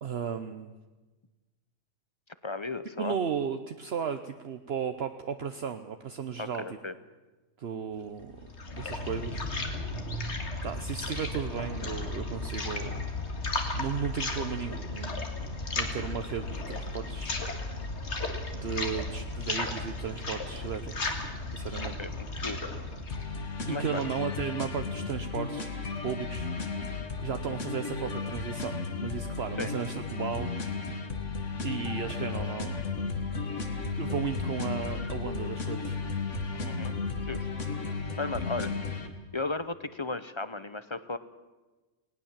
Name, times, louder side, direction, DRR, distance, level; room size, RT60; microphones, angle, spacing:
voice 1, 0.0-0.7 3.0-6.8 7.6-8.3 8.7-9.4 10.6-13.1 13.7-15.3 15.7-17.4 18.5-21.2 21.5-21.9 23.6-25.7 26.0-26.5 26.8-30.5 31.6-32.8 34.0-36.1, right 7 dB, 60° right, 8 dB, 1.0 m, -35 dB
voice 2, 2.4-3.1 6.4-6.9 21.8-22.7 23.7-24.0 27.5-27.6 29.6-29.7 36.6-36.9 37.3-37.5 38.2-38.8 39.3-41.2, left 3 dB, 30° left, 13 dB, 0.6 m, -35 dB
sound 1, 8.2-24.2, left 2 dB, 65° left, 2.4 m, -35 dB
sound 2, 23.1-39.1, left 4 dB, 80° left, 2.1 m, -34 dB
19.5 x 18.5 x 7.4 m, 1.2 s
omnidirectional pair, 1.3 m